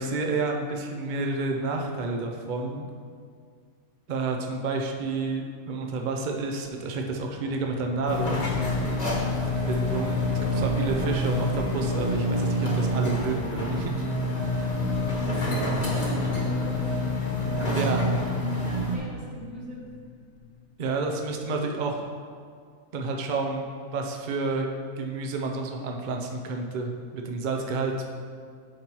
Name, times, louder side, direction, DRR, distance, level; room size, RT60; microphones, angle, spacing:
voice 1, 0.0-2.9 4.1-8.5 9.6-14.0 14.5-14.7 17.7-18.0 20.8-22.1 22.9-24.7 25.0-28.1, right 3 dB, 55° right, 2 dB, 0.5 m, -30 dB
Singing, 6.6-21.4, left 6 dB, 70° left, 0.9 m, -43 dB
sound 1, 8.1-19.0, left 1 dB, 30° left, 1.1 m, -27 dB
voice 2, 15.1-16.8 17.6-18.1 18.6-19.9, right 1 dB, 70° right, -3 dB, 1.7 m, -41 dB
8.9 x 5.8 x 3.0 m, 2.1 s
omnidirectional pair, 1.6 m